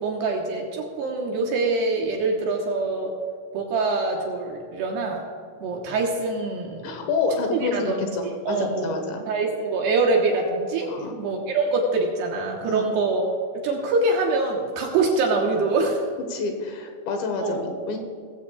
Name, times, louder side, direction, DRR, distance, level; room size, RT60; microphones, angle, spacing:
voice 1, 0.0-3.1 3.5-5.2 5.6-7.1 7.5-8.1 8.5-9.0 9.3-10.9 11.2-13.2 13.5-16.0 17.4-17.6, right 3 dB, 70° right, 0 dB, 2.8 m, -24 dB
voice 2, 6.8-9.2 10.9-11.2 12.6-12.8 16.3-18.0, left 4 dB, 70° left, 4 dB, 3.2 m, -28 dB
19.0 x 16.0 x 2.4 m, 2.2 s
omnidirectional pair, 5.7 m